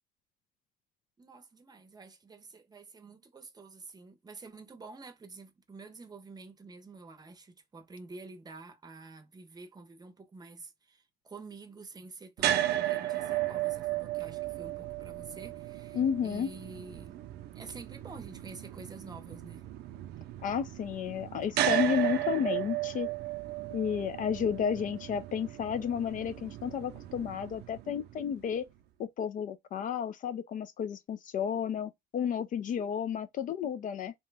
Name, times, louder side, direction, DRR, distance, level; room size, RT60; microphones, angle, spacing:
voice 1, 1.2-17.2 17.5-19.7, right 3 dB, 25° right, 0.7 m, -49 dB
sound 1, 12.4-28.5, right 13 dB, 75° right, 0.5 m, -35 dB
voice 2, 15.9-16.5 20.4-23.1 23.7-28.6 29.0-34.1, left 8 dB, 50° left, 0.4 m, -32 dB
2.9 x 2.2 x 3.2 m
cardioid pair, 110°, 17 cm